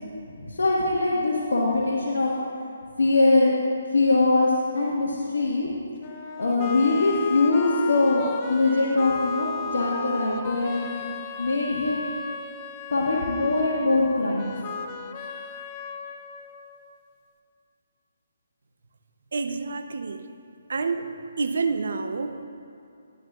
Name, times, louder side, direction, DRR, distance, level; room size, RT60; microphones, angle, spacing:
voice 1, 0.4-2.3 3.0-3.5 3.9-5.7 6.4-10.9 11.4-12.1 12.9-14.4, left 2 dB, 90° left, -6 dB, 1.5 m, -22 dB
sound 1, 6.0-17.0, left 5 dB, 25° left, 0.5 m, -35 dB
voice 2, 19.3-20.2 20.7-21.1 21.4-22.5, right 4 dB, 70° right, 8 dB, 0.7 m, -28 dB
12.5 x 11.0 x 2.4 m, 2.6 s
hypercardioid pair, 160°, 0 cm